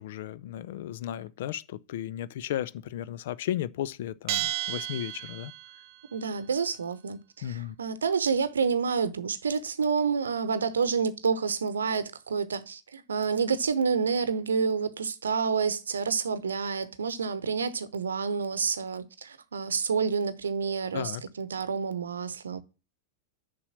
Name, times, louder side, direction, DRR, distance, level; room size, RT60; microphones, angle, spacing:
voice 1, 0.0-5.5 7.4-7.7 20.9-21.2, left 12 dB, 55° left, 0.4 m, -34 dB
Bell, 4.3-5.9, right 16 dB, 45° right, 0.4 m, -32 dB
voice 2, 6.1-22.6, right 5 dB, 70° right, 0.8 m, -29 dB
7.0 x 5.3 x 7.2 m
figure-of-eight pair, 90°, 0 cm